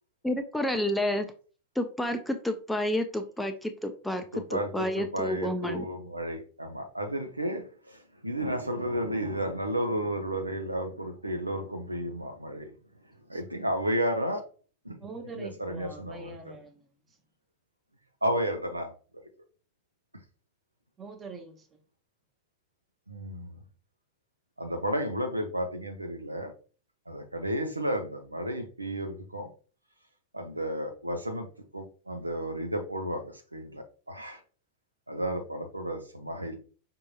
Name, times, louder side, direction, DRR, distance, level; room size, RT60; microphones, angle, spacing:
voice 1, 0.2-1.3 1.8-5.8, left 1 dB, 5° left, 0.5 m, -30 dB
voice 2, 4.3-12.7 13.3-14.4 14.8-15.0 15.4-16.4 18.2-18.9 23.1-23.6 24.6-26.5 27.1-29.5 30.3-31.5 31.7-34.4 35.1-36.6, equal, 85° right, 0.7 m, -32 dB
voice 3, 15.0-16.8 21.0-21.8, right 3 dB, 20° right, 0.9 m, -43 dB
5.3 x 2.8 x 2.3 m
figure-of-eight pair, 90°, 0 cm